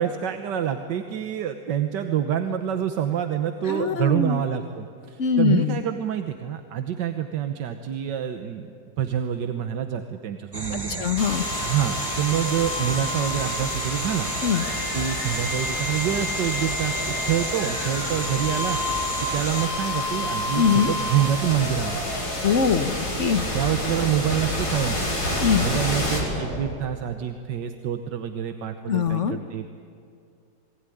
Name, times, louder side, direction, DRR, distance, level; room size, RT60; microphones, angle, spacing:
voice 1, 0.0-8.7 9.0-11.0 11.6-14.3 14.9-18.8 19.3-22.0 23.5-25.2 25.6-29.7, right 9 dB, 85° right, 7 dB, 1.7 m, -27 dB
voice 2, 3.6-4.4 5.2-5.8 11.0-11.5 14.4-14.7 20.5-20.9 22.4-23.4 25.4-25.7 28.9-29.4, left 6 dB, 50° left, 10 dB, 1.3 m, -22 dB
sound 1, 10.5-19.7, right 2 dB, 15° right, 1.2 m, -33 dB
sound 2, 11.2-27.0, left 1 dB, 65° left, 5.2 m, -29 dB
28.5 x 20.0 x 9.9 m, 2.5 s
omnidirectional pair, 1.8 m